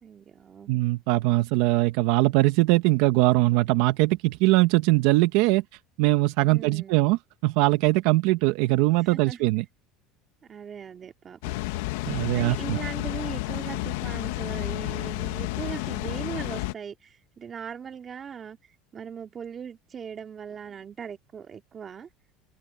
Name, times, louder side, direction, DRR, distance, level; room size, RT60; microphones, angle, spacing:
voice 1, 0.0-0.7 6.5-7.0 9.1-9.5 10.4-11.6 12.3-18.6 18.9-22.1, right 7 dB, 30° right, 2.3 m, -39 dB
voice 2, 0.7-5.6 6.0-9.6 12.1-12.8, right 20 dB, 75° right, 1.2 m, -21 dB
Water, 11.4-16.7, left 18 dB, 85° left, 1.1 m, -31 dB
open air
supercardioid pair, 115°, 0 cm